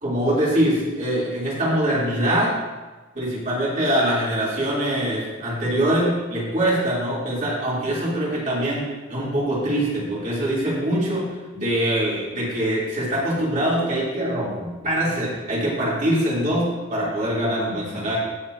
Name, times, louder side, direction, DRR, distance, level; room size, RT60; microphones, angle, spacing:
voice 1, 0.0-2.5 3.1-18.2, right 1 dB, 40° right, -7 dB, 3.6 m, -23 dB
17.5 x 6.0 x 2.9 m, 1.2 s
head